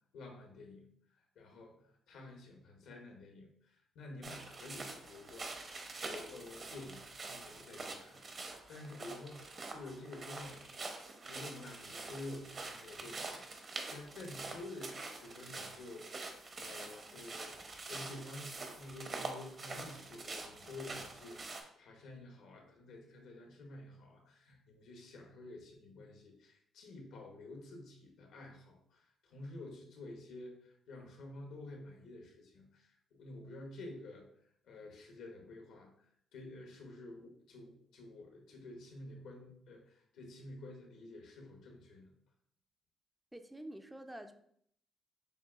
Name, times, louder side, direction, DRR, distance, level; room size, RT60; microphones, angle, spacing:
voice 1, 0.1-0.9 1.1-5.5 5.8-10.7 11.2-17.5 17.9-34.3 34.6-42.1, left 2 dB, 80° left, 2 dB, 0.9 m, -50 dB
sound 1, 4.2-21.6, right 3 dB, 45° right, 0.7 m, -46 dB
voice 2, 43.3-44.3, right 1 dB, 10° right, 7 dB, 0.3 m, -47 dB
6.6 x 2.4 x 2.4 m, 0.68 s
cardioid pair, 90°, 0 cm